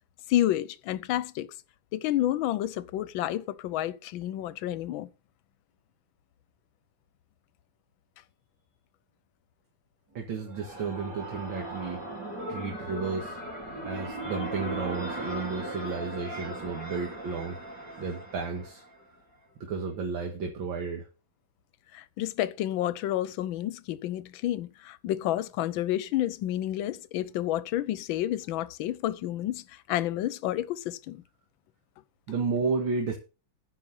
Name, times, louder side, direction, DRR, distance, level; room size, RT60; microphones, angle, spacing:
voice 1, 0.3-1.5 1.9-5.1 21.9-31.2, left 13 dB, 75° left, 1.5 m, -30 dB
voice 2, 10.1-12.0 12.5-13.4 13.8-17.6 18.0-18.8 19.6-21.1 32.3-33.2, right 4 dB, 70° right, 2.3 m, -32 dB
sound 1, 10.2-19.0, right 1 dB, 55° right, 4.6 m, -38 dB
9.9 x 5.5 x 7.4 m
omnidirectional pair, 2.3 m